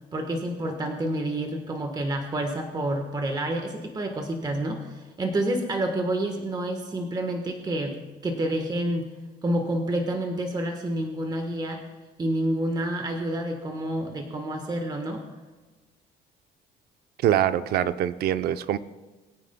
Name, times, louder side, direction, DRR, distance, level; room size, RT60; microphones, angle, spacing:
voice 1, 0.1-9.1 9.4-11.9 12.2-15.2, right 1 dB, 25° right, 4 dB, 1.2 m, -28 dB
voice 2, 17.2-18.8, right 11 dB, 70° right, 13 dB, 0.6 m, -24 dB
21.5 x 9.4 x 2.2 m, 1.3 s
cardioid pair, 110°, 17 cm